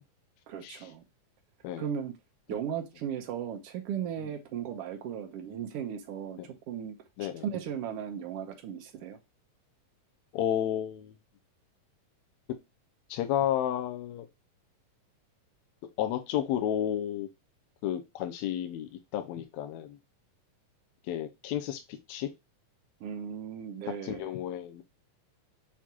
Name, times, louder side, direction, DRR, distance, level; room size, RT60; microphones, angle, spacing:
voice 1, 0.5-1.0 1.8-2.1 2.5-6.9 7.2-9.2 23.0-24.3, right 8 dB, 75° right, 1.4 m, -36 dB
voice 2, 10.3-11.1 13.1-14.3 16.0-17.3 17.8-20.0 21.1-22.3 23.9-24.8, left 10 dB, 80° left, 1.6 m, -32 dB
6.4 x 2.9 x 2.3 m
omnidirectional pair, 3.8 m